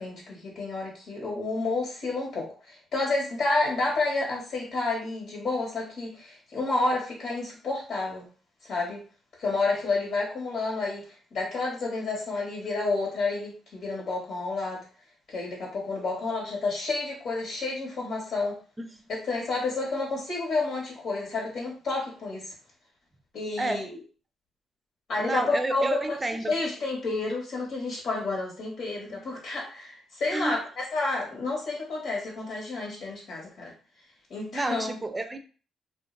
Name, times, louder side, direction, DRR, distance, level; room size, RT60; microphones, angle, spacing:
voice 1, 0.0-8.3 8.6-9.0 9.4-14.8 15.3-18.6 19.1-22.5 23.3-24.0 25.1-26.2 26.5-33.7 34.3-35.0, left 3 dB, 65° left, -2 dB, 1.1 m, -30 dB
voice 2, 25.2-26.5 29.1-29.2 30.3-30.6 34.5-35.4, right 2 dB, 20° right, 7 dB, 0.5 m, -30 dB
2.4 x 2.1 x 3.8 m, 0.38 s
cardioid pair, 90°, 0 cm